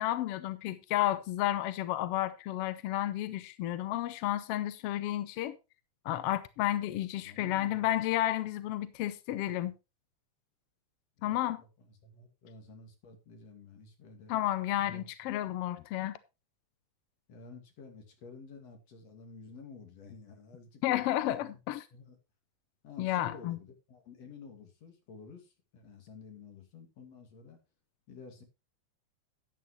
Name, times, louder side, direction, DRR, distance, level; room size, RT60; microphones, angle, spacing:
voice 1, 0.0-5.6 6.0-9.7 11.2-11.6 14.3-16.2 20.8-21.8 23.0-23.6, left 14 dB, 75° left, 1.4 m, -32 dB
voice 2, 7.2-7.9 11.2-14.3 14.8-15.3 17.3-21.6 21.9-22.2 22.8-27.6 28.1-28.4, left 4 dB, 60° left, 3.3 m, -51 dB
12.5 x 9.2 x 3.1 m
omnidirectional pair, 3.4 m